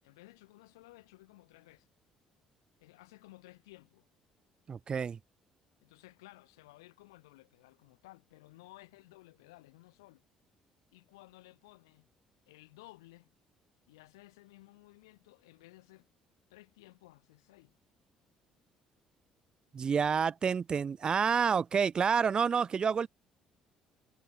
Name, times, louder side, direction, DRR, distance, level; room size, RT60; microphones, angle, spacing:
voice 1, 0.0-1.9 2.8-4.1 5.8-10.2 10.9-12.1 12.5-13.3 13.9-16.1 16.5-17.8, left 20 dB, 85° left, 5.0 m, -57 dB
voice 2, 4.7-5.2 19.7-23.1, right 6 dB, 40° right, 0.8 m, -28 dB
hypercardioid pair, 60°, 2 cm